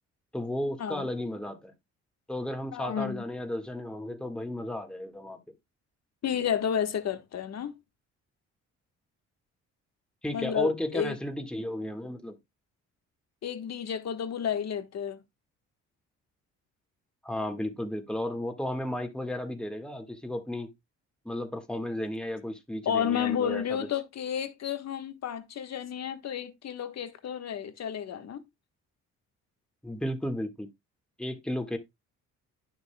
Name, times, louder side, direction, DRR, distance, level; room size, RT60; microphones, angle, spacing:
voice 1, 0.3-1.7 2.3-5.5 10.2-12.4 17.2-20.7 21.3-23.9 29.8-30.7 31.2-31.8, left 1 dB, 5° left, 1.7 m, -34 dB
voice 2, 2.7-3.2 6.2-7.7 10.3-11.2 13.4-15.2 22.8-28.4, left 8 dB, 60° left, 1.4 m, -31 dB
10.5 x 6.9 x 2.3 m
cardioid pair, 90°, 30 cm